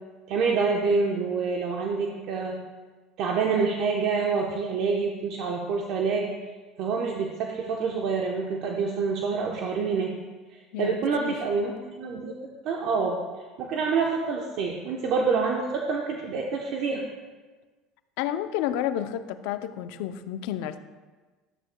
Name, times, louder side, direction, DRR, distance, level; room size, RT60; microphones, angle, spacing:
voice 1, 0.3-2.6 3.2-6.3 6.8-10.1 10.8-12.3 12.6-13.2 13.6-17.0, right 5 dB, 60° right, 0 dB, 0.9 m, -27 dB
voice 2, 10.7-11.4 18.2-20.8, left 11 dB, 75° left, 11 dB, 0.5 m, -31 dB
12.5 x 8.6 x 2.2 m, 1.3 s
supercardioid pair, 130°, 0 cm